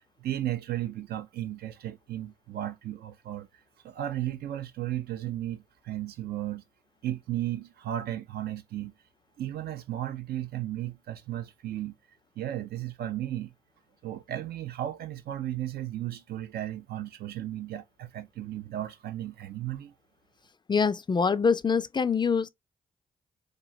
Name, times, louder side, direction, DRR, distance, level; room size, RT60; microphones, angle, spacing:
voice 1, 0.2-3.5 3.8-6.7 7.0-8.9 9.4-12.0 12.4-13.5 14.0-19.9, right 13 dB, 70° right, 0.4 m, -34 dB
voice 2, 20.7-22.5, left 5 dB, 25° left, 0.3 m, -24 dB
2.9 x 2.4 x 2.6 m
supercardioid pair, 50°, 17 cm